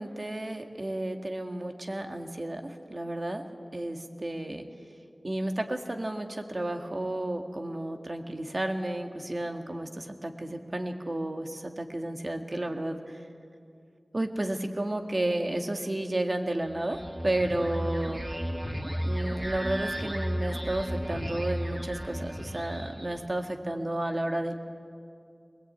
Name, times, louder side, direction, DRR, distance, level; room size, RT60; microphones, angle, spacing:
voice 1, 0.0-3.4 3.7-4.6 5.2-13.0 14.1-18.2 19.0-24.6, right 1 dB, 45° right, 5 dB, 2.0 m, -32 dB
sound 1, 16.7-23.3, equal, 25° right, 2.5 m, -34 dB
21.5 x 21.0 x 8.9 m, 2.4 s
wide cardioid pair, 65°, 0 cm